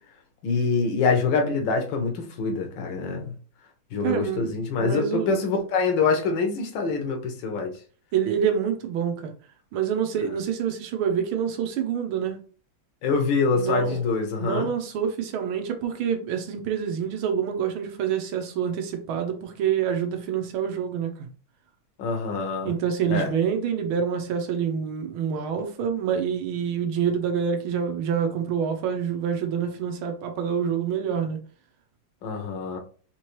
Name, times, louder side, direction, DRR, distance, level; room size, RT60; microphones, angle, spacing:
voice 1, 0.4-3.3 3.9-7.7 13.0-14.7 22.0-22.7 23.1-23.3 32.2-32.8, left 4 dB, 70° left, 1.6 m, -25 dB
voice 2, 4.0-5.4 8.1-9.3 9.7-12.4 13.5-14.0 14.4-21.3 22.6-31.4, right 7 dB, 85° right, 1.5 m, -27 dB
4.5 x 2.9 x 3.0 m
omnidirectional pair, 2.3 m